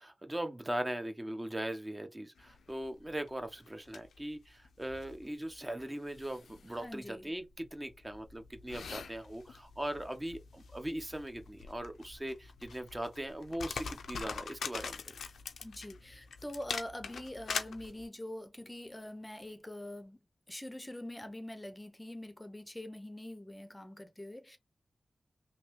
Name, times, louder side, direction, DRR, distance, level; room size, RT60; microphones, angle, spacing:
voice 1, 0.0-15.2, right 1 dB, 20° right, 0.6 m, -40 dB
sound 1, 2.4-18.1, left 5 dB, 90° left, 0.3 m, -44 dB
voice 2, 6.8-7.3 15.6-20.2 20.5-24.6, left 1 dB, 20° left, 0.5 m, -44 dB
3.0 x 2.6 x 2.9 m
cardioid pair, 40°, 0 cm